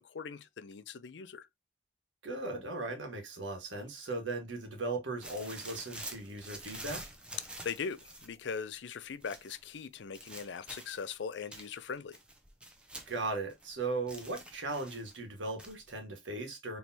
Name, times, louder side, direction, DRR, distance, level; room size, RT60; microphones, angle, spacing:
voice 1, 0.0-1.5 7.6-12.2, left 6 dB, 80° left, 0.5 m, -40 dB
voice 2, 2.2-7.0 13.1-16.8, right 2 dB, 90° right, 1.6 m, -37 dB
sound 1, 5.2-8.4 9.2-9.6 10.1-11.1 11.5-13.8 14.1-15.2 15.6-15.9, right 1 dB, 5° right, 0.6 m, -47 dB
4.4 x 3.3 x 2.7 m
head